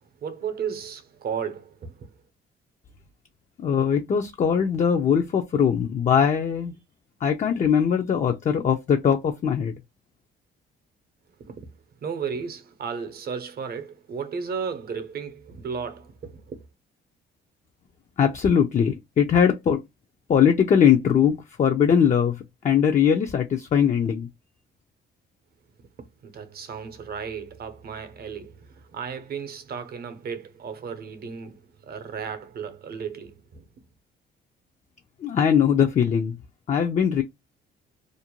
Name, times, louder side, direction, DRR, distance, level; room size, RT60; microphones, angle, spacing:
voice 1, 0.2-2.1 11.4-11.7 12.0-16.7 26.0-33.8, right 6 dB, 50° right, 0.7 m, -34 dB
voice 2, 3.6-6.8 7.2-9.8 18.2-19.8 20.3-24.3 35.2-36.4 36.7-37.2, left 7 dB, 40° left, 0.4 m, -21 dB
2.5 x 2.1 x 2.9 m
cardioid pair, 90°, 20 cm